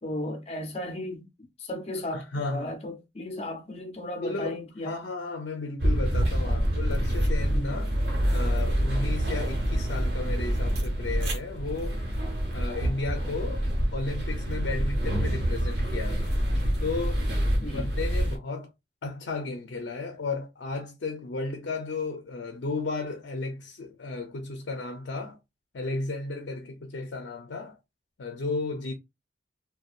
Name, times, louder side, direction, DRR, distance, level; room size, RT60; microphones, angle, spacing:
voice 1, 0.0-1.3 1.6-5.0 6.4-6.7 7.5-7.9 17.6-17.9, left 1 dB, 35° left, 0.6 m, -35 dB
voice 2, 2.1-2.7 4.2-4.6 4.8-7.9 8.3-12.0 12.5-13.7 13.9-16.3 16.8-17.3 17.6-18.7 19.0-25.4 25.7-27.8 28.2-28.9, left 3 dB, 80° left, 0.5 m, -34 dB
sound 1, 5.8-18.4, equal, 60° right, 1.1 m, -27 dB
2.6 x 2.2 x 2.4 m
head